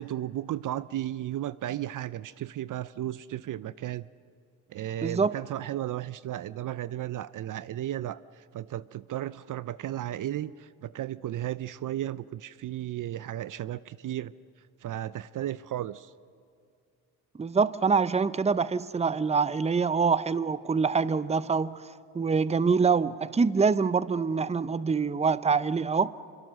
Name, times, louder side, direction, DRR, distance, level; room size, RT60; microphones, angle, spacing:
voice 1, 0.0-4.1 4.7-14.3 14.8-16.1, right 12 dB, 55° right, 0.6 m, -34 dB
voice 2, 5.0-5.3 17.4-21.9 22.1-26.1, right 5 dB, 15° right, 0.7 m, -25 dB
25.5 x 24.0 x 6.5 m
supercardioid pair, 65°, 38 cm